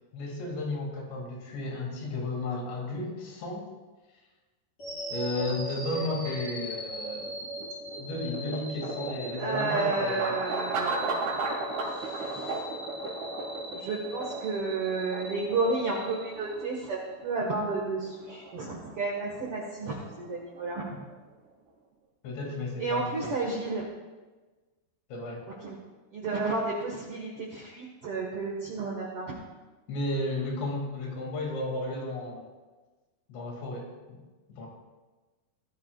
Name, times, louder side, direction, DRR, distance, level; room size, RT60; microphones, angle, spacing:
voice 1, 0.1-3.6 5.1-7.3 8.0-10.3 22.2-23.3 25.1-25.4 29.9-32.5 33.3-34.2 34.5-34.7, left 2 dB, 80° left, -1 dB, 4.8 m, -33 dB
sound 1, 4.8-16.9, equal, 25° left, 4.7 m, -40 dB
sound 2, 7.2-21.3, right 3 dB, 90° right, 4.7 m, -36 dB
voice 2, 9.3-11.2 11.9-12.6 13.7-20.9 22.8-23.9 25.6-25.7 26.1-29.3, right 3 dB, 60° right, -2 dB, 1.5 m, -32 dB
21.0 x 13.0 x 2.4 m, 1.3 s
omnidirectional pair, 5.0 m